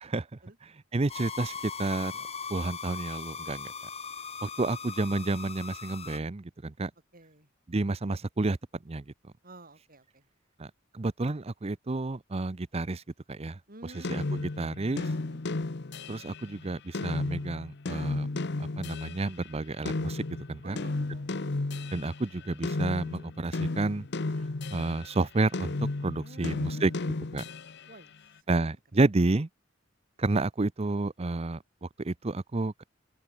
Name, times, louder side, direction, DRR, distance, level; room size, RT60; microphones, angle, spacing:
voice 1, 0.9-1.5 1.8-2.1 2.5-3.7 4.4-6.9 7.7-8.6 8.9-9.0 10.6-13.0 13.3-13.6 13.9-15.1 16.1-18.3 18.8-20.2 20.5-20.8 21.9-24.0 24.7-25.7 26.0-26.9 27.3-27.4 28.5-29.5 30.2-32.8, right 2 dB, 30° right, 0.6 m, -30 dB
sound 1, 1.1-6.2, left 6 dB, 30° left, 6.8 m, -39 dB
voice 2, 7.1-7.5 9.4-10.2 13.7-14.1 15.1-15.4 20.6-21.5 26.2-27.2 27.9-28.1, right 1 dB, 45° right, 6.4 m, -50 dB
sound 2, 14.0-19.3 19.9-25.1 25.5-27.9, left 2 dB, 60° left, 0.9 m, -33 dB
open air
head